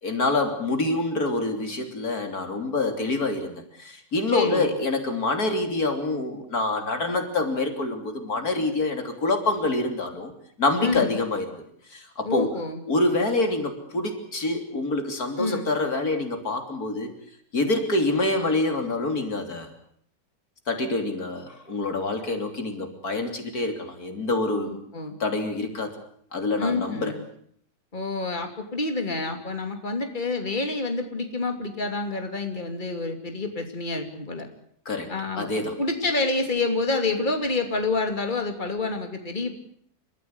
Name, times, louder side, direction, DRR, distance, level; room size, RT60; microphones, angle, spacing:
voice 1, 0.0-10.3 10.6-11.6 11.9-12.5 12.9-17.1 17.5-19.7 20.7-24.7 25.2-25.9 26.3-27.1 34.9-35.8, left 2 dB, 80° left, 6 dB, 3.7 m, -26 dB
voice 2, 4.3-4.7 10.8-11.2 12.2-12.8 15.4-15.7 24.6-25.1 26.6-27.2 27.9-34.5 35.1-35.5 35.8-39.5, left 3 dB, 30° left, 5 dB, 3.0 m, -28 dB
29.5 x 14.5 x 9.7 m, 0.65 s
omnidirectional pair, 1.6 m